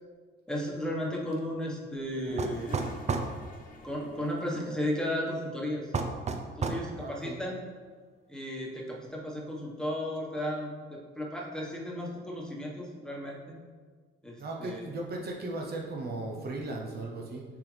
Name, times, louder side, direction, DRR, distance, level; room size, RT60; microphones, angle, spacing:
voice 1, 0.5-2.9 3.8-5.9 6.6-7.6 8.3-13.6 14.2-14.9, equal, 5° left, -3 dB, 1.4 m, -34 dB
Toilet flush, 1.9-5.0, left 2 dB, 40° left, 1.2 m, -47 dB
sound 1, 2.4-3.3 5.9-6.9, right 4 dB, 35° right, 0.6 m, -30 dB
voice 2, 7.0-7.4 14.4-17.4, right 2 dB, 50° right, 0 dB, 1.0 m, -37 dB
6.8 x 5.0 x 3.4 m, 1.5 s
cardioid pair, 85°, 20 cm